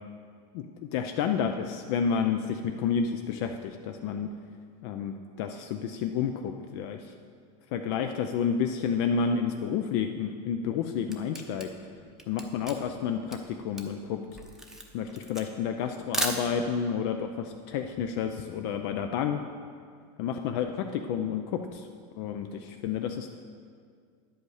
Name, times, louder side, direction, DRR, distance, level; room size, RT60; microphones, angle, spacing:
voice 1, 0.9-4.3 4.8-7.1 7.7-11.7 12.3-14.2 14.9-19.4 20.2-21.9 22.2-23.3, left 7 dB, 65° left, 5 dB, 0.5 m, -30 dB
Camera, 10.7-16.9, right 1 dB, 5° right, 0.7 m, -36 dB
10.5 x 8.0 x 4.9 m, 2.1 s
supercardioid pair, 165°, 15 cm